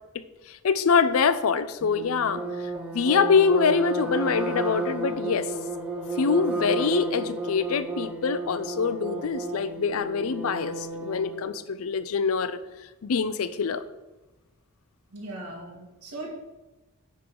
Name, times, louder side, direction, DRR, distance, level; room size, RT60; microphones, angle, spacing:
voice 1, 0.1-2.4 2.9-5.5 6.2-12.6 13.0-13.8, left 5 dB, 70° left, 13 dB, 0.5 m, -24 dB
sound 1, 1.8-11.4, right 2 dB, 5° right, 0.9 m, -32 dB
voice 2, 15.1-16.3, right 2 dB, 90° right, 0 dB, 2.0 m, -38 dB
9.8 x 3.8 x 4.7 m, 1.1 s
head